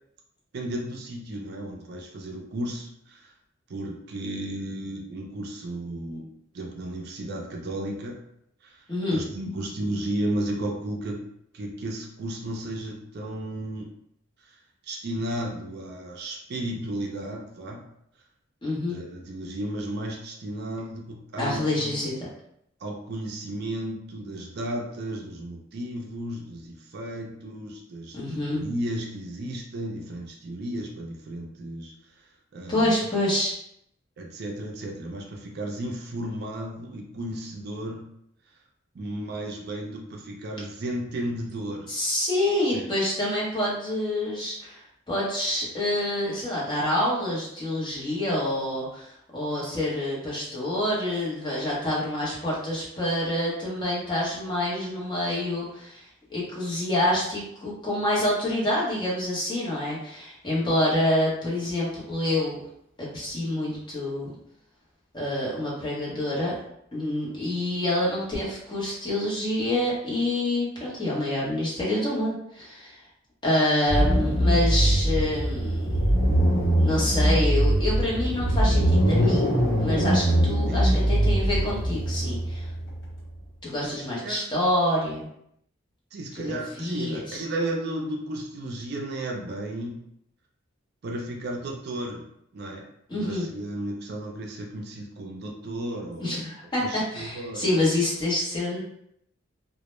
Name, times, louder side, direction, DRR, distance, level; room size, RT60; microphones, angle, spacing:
voice 1, 0.5-3.3 3.7-6.3 6.5-8.2 8.6-8.8 9.1-11.2 11.5-13.9 14.8-17.8 18.9-22.0 22.8-28.2 28.5-31.9 32.5-32.9 34.2-38.0 38.9-41.9 42.7-42.9 80.7-80.9 83.9-84.5 86.1-90.0 91.0-92.2 92.5-92.9 93.1-96.4 96.8-97.9, right 1 dB, 55° right, 0 dB, 0.4 m, -34 dB
voice 2, 18.6-19.0 21.4-22.2 28.1-28.6 32.7-33.6 41.9-44.8 45.1-56.0 56.3-62.6 63.0-64.3 65.1-66.6 66.9-73.0 73.4-75.9 76.8-82.7 83.6-85.3 86.3-86.4 86.8-87.4 93.1-93.5 96.2-98.8, left 1 dB, 25° left, -6 dB, 0.7 m, -27 dB
sound 1, 73.9-83.3, right 1 dB, 65° left, 0.8 m, -22 dB
2.1 x 2.0 x 3.0 m, 0.74 s
head